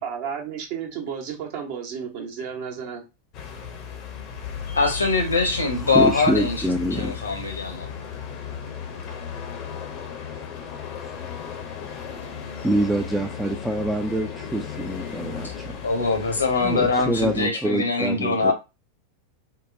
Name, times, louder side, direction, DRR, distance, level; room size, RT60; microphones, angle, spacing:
voice 1, 0.0-3.0, right 7 dB, 45° right, 1.0 m, -32 dB
sound 1, 3.3-17.5, left 7 dB, 40° left, 0.6 m, -35 dB
voice 2, 4.7-6.6 6.9-7.9 15.8-18.5, left 3 dB, 75° left, 0.9 m, -22 dB
voice 3, 5.8-7.3 10.6-10.7 11.0-11.2 12.6-15.8 16.6-18.5, right 1 dB, 5° right, 0.4 m, -26 dB
3.9 x 2.1 x 2.6 m
figure-of-eight pair, 90°, 0 cm